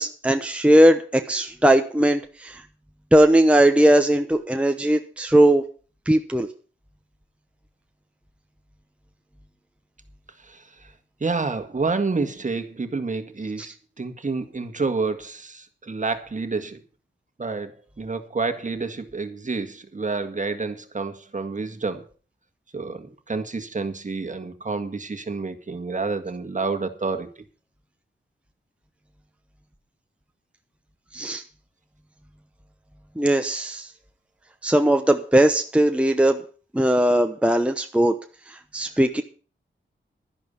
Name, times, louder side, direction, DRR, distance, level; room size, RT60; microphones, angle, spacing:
voice 1, 0.0-2.6 3.1-5.6 6.1-6.5 13.6-13.7 31.1-31.4 33.2-33.9 34.6-36.4 36.7-38.1 38.5-39.2, right 1 dB, 5° right, 6 dB, 0.9 m, -19 dB
voice 2, 10.5-10.9 11.2-13.7 14.0-16.8 17.4-22.1 22.7-27.3, right 4 dB, 40° right, 8 dB, 1.8 m, -29 dB
12.0 x 11.0 x 5.4 m, 0.37 s
wide cardioid pair, 85°, 20 cm